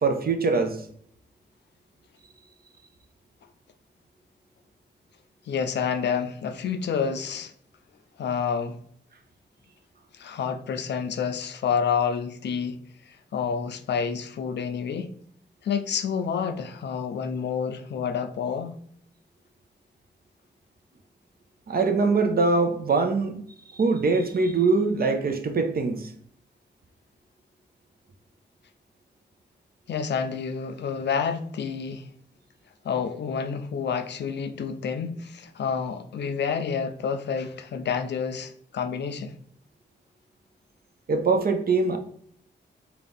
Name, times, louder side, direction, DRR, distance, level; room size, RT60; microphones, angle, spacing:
voice 1, 0.0-0.8 21.7-23.4 23.7-26.1 41.1-42.0, right 4 dB, 55° right, 0.6 m, -23 dB
voice 2, 5.5-7.5 8.2-8.8 10.1-15.1 15.6-18.8 29.9-32.1 32.8-39.4, left 6 dB, 65° left, 0.4 m, -29 dB
3.8 x 2.3 x 3.4 m
cardioid pair, 60°, 19 cm